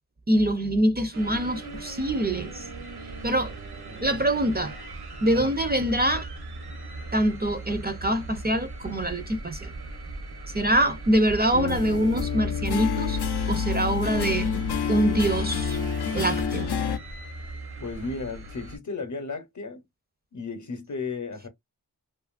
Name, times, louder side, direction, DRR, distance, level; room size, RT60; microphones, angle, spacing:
voice 1, 0.3-2.7 3.2-3.5 4.0-4.7 5.2-6.3 7.1-9.7 10.5-13.2 13.5-14.5 14.9-15.8 16.1-16.7, right 1 dB, 25° right, 0.4 m, -24 dB
sound 1, 1.1-18.8, right 2 dB, 75° right, 0.9 m, -39 dB
sound 2, 11.5-17.0, left 6 dB, 85° left, 0.5 m, -28 dB
voice 2, 17.8-19.8 20.3-21.5, left 4 dB, 50° left, 0.7 m, -34 dB
2.7 x 2.4 x 2.3 m
wide cardioid pair, 70°, 38 cm